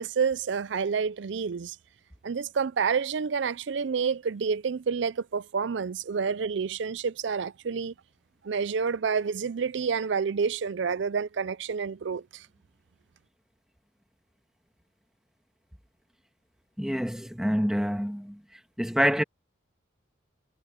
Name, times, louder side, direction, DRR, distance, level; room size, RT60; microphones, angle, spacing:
voice 1, 0.0-1.8 2.2-7.9 8.4-12.5, right 5 dB, 70° right, 0.5 m, -29 dB
voice 2, 16.8-18.4 18.8-19.2, equal, 5° right, 1.5 m, -26 dB
head